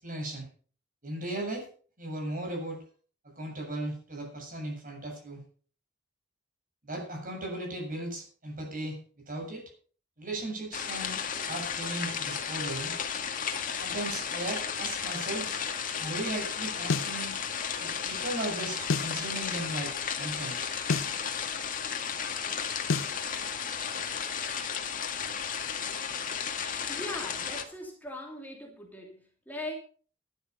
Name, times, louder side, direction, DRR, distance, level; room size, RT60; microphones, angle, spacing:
voice 1, 0.0-0.5 1.0-1.6 2.0-2.8 3.2-5.4 6.9-9.0 9.3-9.6 10.2-12.9 13.8-15.6 16.0-17.4 17.8-20.7, right 1 dB, 45° right, 2 dB, 7.3 m, -37 dB
sound 1, 10.7-27.6, left 7 dB, 45° left, 2.0 m, -34 dB
sound 2, 16.9-17.2 18.9-19.2 20.9-21.2 22.9-23.2, left 4 dB, 90° left, 0.6 m, -29 dB
voice 2, 26.9-29.7, left 1 dB, 10° left, 0 dB, 3.0 m, -40 dB
13.0 x 12.0 x 5.6 m, 0.42 s
head